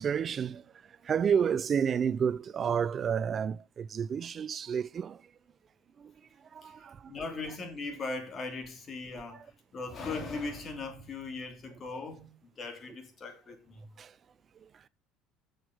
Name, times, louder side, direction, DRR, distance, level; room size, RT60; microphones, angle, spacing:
voice 1, 0.0-5.3 6.0-7.1 9.3-9.5 14.0-14.2 14.6-14.9, right 7 dB, 40° right, 0.5 m, -31 dB
voice 2, 6.6-13.9, left 3 dB, 40° left, 2.9 m, -39 dB
6.8 x 6.4 x 7.7 m
supercardioid pair, 85°, 0 cm